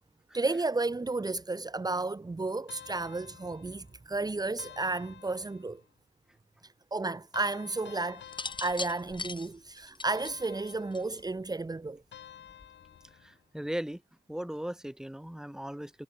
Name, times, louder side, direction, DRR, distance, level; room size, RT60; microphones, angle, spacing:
voice 1, 0.3-5.8 6.9-8.3 8.6-12.0, right 3 dB, 20° right, 3.5 m, -32 dB
sound 1, 2.7-4.0 4.6-5.9 7.3-9.5 10.0-11.3 12.1-13.4, left 9 dB, 60° left, 5.6 m, -51 dB
sound 2, 8.2-11.4 12.5-12.9, left 3 dB, 25° left, 4.5 m, -39 dB
voice 2, 13.5-14.0 14.3-16.0, equal, 5° right, 4.2 m, -37 dB
cardioid pair, 110°, 20 cm